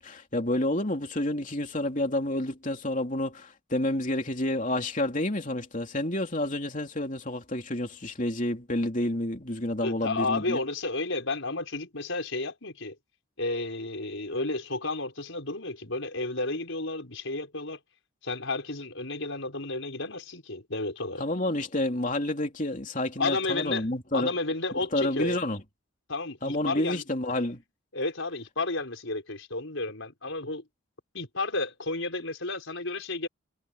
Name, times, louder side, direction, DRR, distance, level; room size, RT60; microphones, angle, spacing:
voice 1, 0.0-10.6 21.2-24.3 24.9-25.6 26.4-27.6, left 1 dB, 35° left, 3.1 m, -29 dB
voice 2, 9.8-13.0 13.4-17.8 18.2-21.2 23.2-23.9 24.1-25.4 26.1-27.0 27.9-30.6 31.1-33.3, left 3 dB, 65° left, 5.2 m, -32 dB
head